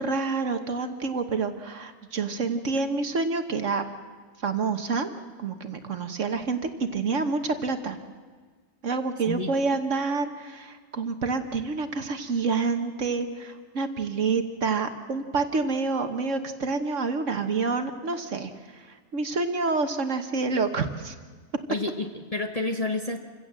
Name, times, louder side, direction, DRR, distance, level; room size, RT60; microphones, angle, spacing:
voice 1, 0.0-3.8 4.4-5.1 5.4-8.0 8.8-21.1, right 4 dB, 50° right, 8 dB, 1.4 m, -28 dB
voice 2, 21.7-23.2, left 2 dB, 25° left, 4 dB, 1.1 m, -29 dB
27.5 x 16.0 x 7.5 m, 1.5 s
omnidirectional pair, 1.7 m